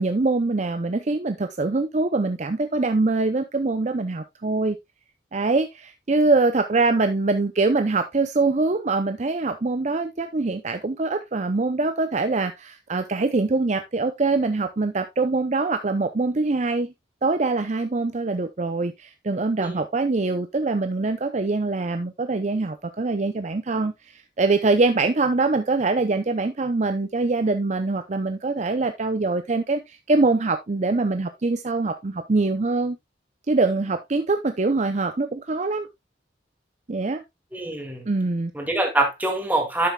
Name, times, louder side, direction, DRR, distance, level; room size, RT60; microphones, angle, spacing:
voice 1, 0.0-4.8 5.3-16.9 17.2-33.0 33.5-35.9 36.9-37.2 38.1-38.5, right 3 dB, 40° right, 0.6 m, -23 dB
voice 2, 37.5-38.1 38.5-39.9, right 2 dB, 10° right, 2.2 m, -24 dB
12.0 x 6.8 x 2.3 m
head